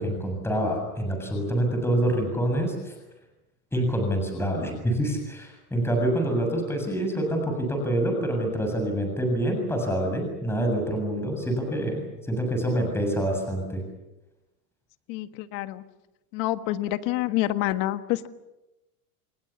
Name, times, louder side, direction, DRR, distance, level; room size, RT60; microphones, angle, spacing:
voice 1, 0.0-2.9 3.7-13.8, right 1 dB, 5° left, 2 dB, 7.2 m, -26 dB
voice 2, 15.1-15.8 16.3-18.3, left 15 dB, 50° left, 10 dB, 1.6 m, -27 dB
29.5 x 21.5 x 7.2 m, 0.98 s
supercardioid pair, 140°, 45 cm